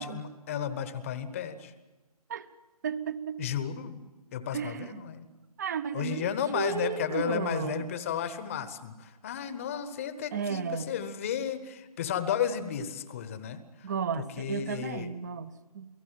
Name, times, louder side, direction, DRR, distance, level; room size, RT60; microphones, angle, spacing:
voice 1, 0.0-1.7 3.4-4.0 4.3-5.3 5.9-15.1, left 8 dB, 20° left, 13 dB, 1.1 m, -33 dB
voice 2, 2.8-3.4 4.5-5.0 5.6-7.9 10.3-10.9 13.8-15.9, right 7 dB, 25° right, 17 dB, 0.9 m, -34 dB
28.5 x 18.5 x 7.6 m, 1.2 s
figure-of-eight pair, 150°, 20 cm